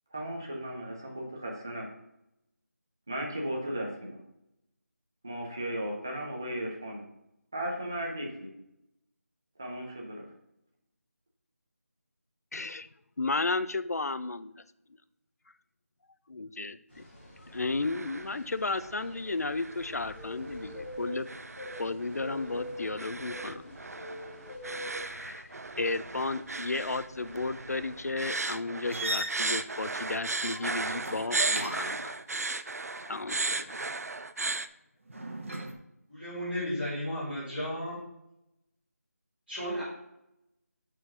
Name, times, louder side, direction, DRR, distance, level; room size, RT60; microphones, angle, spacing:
voice 1, 0.1-1.9 3.1-4.2 5.2-7.0 7.5-8.5 9.6-10.3, right 1 dB, 15° right, 0 dB, 0.6 m, -36 dB
voice 2, 12.5-12.9 13.2-14.5 16.3-17.1 17.5-21.3 21.8-23.8 24.1-24.2 24.9-32.2 32.9-33.8, left 3 dB, 75° left, 13 dB, 0.5 m, -34 dB
sound 1, 16.9-28.1, left 1 dB, 40° left, 3.0 m, -46 dB
sound 2, 17.5-18.4 18.7-19.1 19.6-34.7, right 3 dB, 70° right, 0.5 m, -36 dB
sound 3, 28.9-32.1 35.1-35.7, right 1 dB, 55° right, 1.1 m, -38 dB
voice 3, 36.1-38.0 39.5-39.8, equal, 10° left, -19 dB, 2.2 m, -34 dB
6.5 x 4.5 x 5.6 m, 0.84 s
figure-of-eight pair, 180°, 9 cm